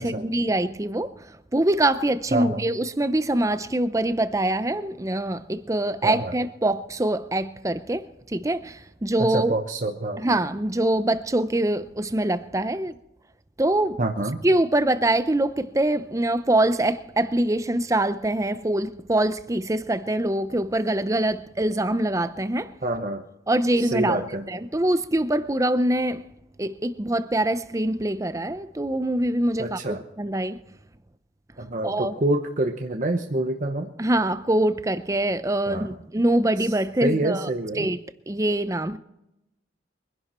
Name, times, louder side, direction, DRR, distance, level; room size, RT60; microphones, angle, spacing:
voice 1, 0.0-9.5 10.2-13.0 13.6-14.0 14.4-22.7 23.5-24.2 24.5-26.2 26.6-30.6 31.8-32.1 34.0-37.5 37.8-38.0 38.3-39.0, right 1 dB, 15° right, 0.6 m, -24 dB
voice 2, 2.3-2.6 6.0-6.3 9.2-10.2 14.0-14.4 22.8-23.2 23.8-24.5 29.6-30.0 31.6-33.9 35.7-35.9 36.6-36.7 37.0-37.9, right 1 dB, 40° right, 0.9 m, -27 dB
23.5 x 11.0 x 4.4 m
head